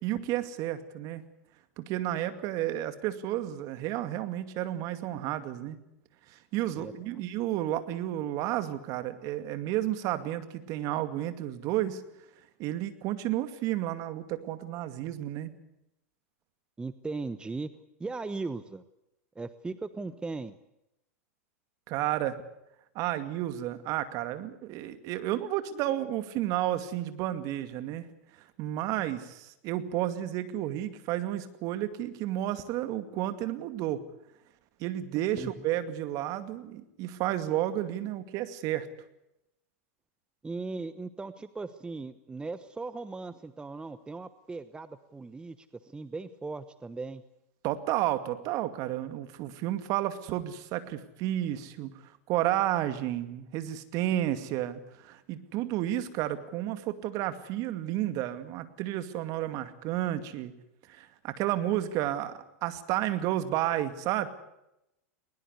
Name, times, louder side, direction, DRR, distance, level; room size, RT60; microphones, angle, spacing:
voice 1, 0.0-1.2 1.8-5.8 6.3-12.0 12.6-15.5 21.9-22.4 22.9-28.1 28.4-34.0 34.8-38.9 47.6-60.5 60.9-64.3, right 13 dB, 50° right, 10 dB, 2.3 m, -31 dB
voice 2, 6.7-7.2 16.8-17.7 18.0-18.8 19.3-20.6 35.3-35.5 40.4-47.2, right 3 dB, 10° right, 13 dB, 1.0 m, -38 dB
20.5 x 20.0 x 8.3 m, 0.86 s
hypercardioid pair, 105°, 8 cm